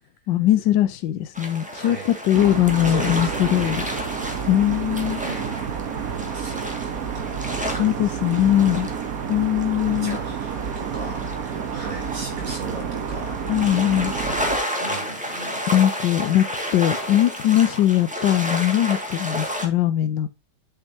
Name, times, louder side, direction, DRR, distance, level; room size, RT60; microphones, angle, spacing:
voice 1, 0.3-2.0 2.3-3.8 4.5-5.2 7.8-8.9 9.3-10.2 13.5-14.1 15.7-16.4 16.7-20.3, left 12 dB, 80° left, 1.3 m, -20 dB
sound 1, 1.3-19.7, equal, 5° right, 1.8 m, -32 dB
voice 2, 1.7-2.2 2.8-3.8 5.2-9.1 10.0-15.6, right 3 dB, 85° right, 4.0 m, -38 dB
sound 2, 2.3-14.6, right 7 dB, 60° right, 1.3 m, -30 dB
8.7 x 7.6 x 2.7 m
omnidirectional pair, 1.9 m